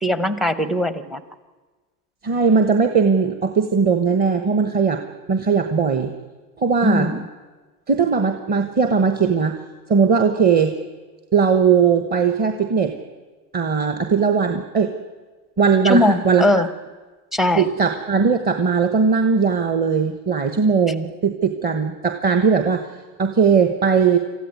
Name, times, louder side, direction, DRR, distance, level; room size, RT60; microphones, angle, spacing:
voice 1, 0.0-1.2 6.8-7.3 15.8-16.7 17.3-17.7, left 1 dB, ahead, 13 dB, 0.7 m, -20 dB
voice 2, 2.2-5.0 5.3-6.1 6.6-7.1 7.9-9.6 9.9-10.7 11.3-12.9 13.5-14.9 15.6-16.6 17.6-22.9 23.2-24.2, right 5 dB, 20° right, 7 dB, 1.2 m, -19 dB
26.0 x 14.5 x 9.5 m, 1.3 s
supercardioid pair, 140°, 50 cm